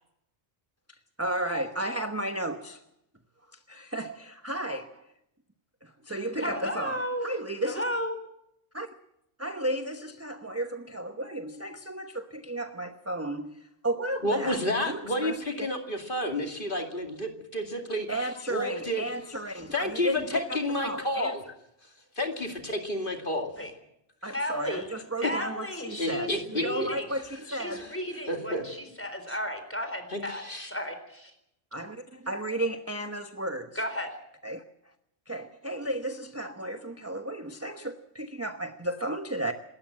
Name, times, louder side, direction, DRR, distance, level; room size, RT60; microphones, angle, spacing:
voice 1, 1.2-2.8 3.5-5.1 5.8-7.8 8.7-8.9 9.4-15.7 18.1-21.4 24.2-27.9 31.7-33.8 34.4-34.6 35.3-39.5, right 1 dB, 15° right, 1.0 m, -34 dB
voice 2, 6.4-7.3 7.7-8.2 23.6-23.7 24.3-24.8 25.2-27.0 27.5-30.4 30.7-31.3 33.8-34.1, equal, 10° left, 4.0 m, -33 dB
voice 3, 14.2-18.1 18.5-19.0 19.7-21.4 22.2-23.5 25.2-25.3 26.0-26.9 27.7-27.9 28.3-28.6 29.3-29.4 30.1-30.7, left 1 dB, 50° left, 2.6 m, -30 dB
27.5 x 13.5 x 7.5 m
omnidirectional pair, 1.1 m